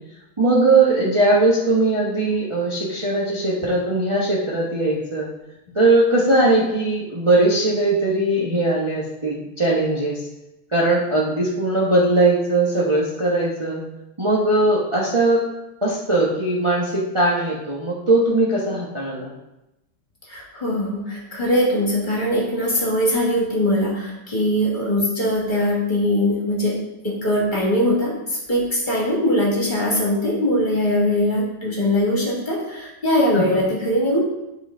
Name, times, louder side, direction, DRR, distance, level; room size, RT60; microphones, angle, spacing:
voice 1, 0.4-5.3 5.7-10.2 10.7-13.8 14.2-15.4 15.8-19.3 33.3-33.6, right 2 dB, 35° right, -6 dB, 0.4 m, -19 dB
voice 2, 20.3-34.2, left 1 dB, 25° left, -4 dB, 1.5 m, -21 dB
11.0 x 3.8 x 3.8 m, 0.92 s
omnidirectional pair, 2.4 m